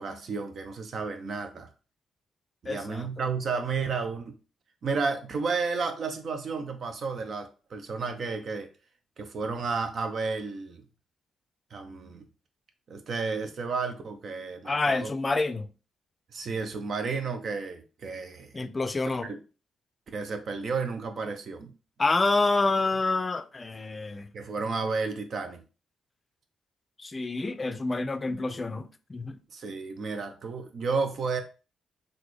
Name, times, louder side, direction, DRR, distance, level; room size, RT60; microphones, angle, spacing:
voice 1, 0.0-1.7 2.6-4.3 4.8-8.7 9.2-10.8 11.7-12.2 12.9-15.1 16.3-18.6 19.2-19.4 20.1-21.7 24.3-25.6 29.5-31.4, right 4 dB, 60° right, 0.7 m, -32 dB
voice 2, 2.7-3.1 14.6-15.7 18.5-19.3 22.0-24.3 27.0-29.4, left 3 dB, 35° left, 0.4 m, -28 dB
3.9 x 2.5 x 3.2 m
hypercardioid pair, 45°, 0 cm